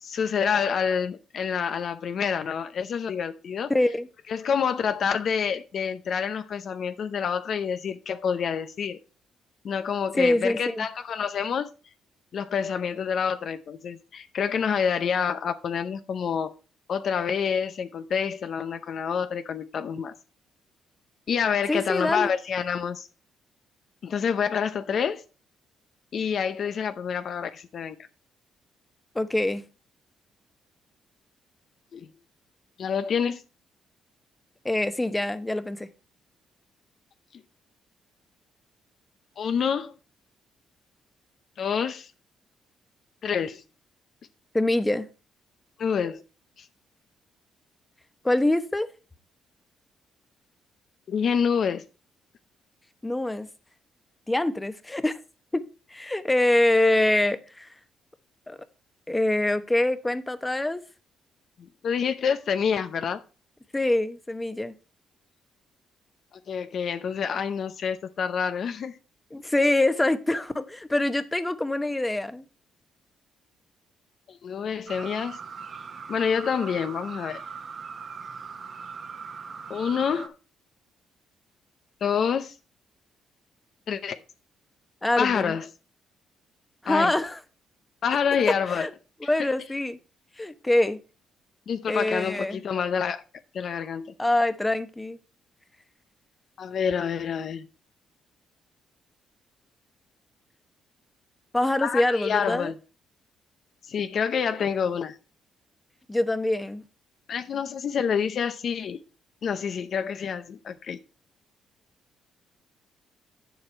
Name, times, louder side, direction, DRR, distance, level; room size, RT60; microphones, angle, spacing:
voice 1, 0.0-3.7 4.3-9.0 9.6-11.7 12.3-16.5 16.9-20.1 21.3-23.1 24.0-25.2 26.1-28.0 31.9-32.1 32.8-33.4 39.4-39.9 41.6-42.1 43.2-43.6 45.8-46.2 46.6-46.7 51.1-51.8 61.8-63.2 66.5-69.0 74.3-75.4 76.1-77.4 79.7-80.3 82.0-82.6 83.9-84.2 85.2-85.7 86.9-87.1 88.0-88.9 89.4-89.5 91.7-93.2 93.5-94.1 96.6-97.7 101.8-102.8 103.8-105.2 107.3-109.0 109.4-111.0, left 7 dB, 60° left, 0.7 m, -27 dB
voice 2, 3.7-4.1 10.2-10.8 21.7-22.3 29.1-29.6 34.6-35.9 44.5-45.1 48.2-48.9 53.0-53.5 54.3-55.2 55.5-55.6 55.9-57.7 58.5-58.6 59.1-60.8 63.7-64.7 69.3-72.4 85.0-85.5 86.8-87.4 88.8-88.9 89.2-90.0 90.4-91.0 91.9-92.6 94.2-95.2 101.5-102.7 106.1-106.8, left 1 dB, 10° left, 0.9 m, -24 dB
sound 1, 74.9-80.3, right 5 dB, 45° right, 1.1 m, -40 dB
8.7 x 7.1 x 4.4 m
cardioid pair, 90°, 0 cm